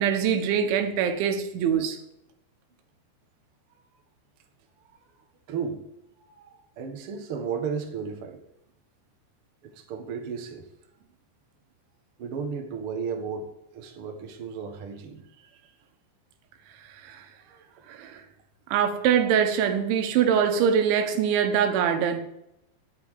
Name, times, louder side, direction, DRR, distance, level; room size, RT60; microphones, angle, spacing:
voice 1, 0.0-2.0 17.0-17.2 17.9-18.2 18.7-22.2, right 8 dB, 80° right, 3.6 m, -23 dB
voice 2, 5.5-5.8 6.2-8.4 9.6-10.6 12.2-15.2, right 6 dB, 55° right, 1.5 m, -34 dB
11.5 x 8.9 x 8.3 m
omnidirectional pair, 5.3 m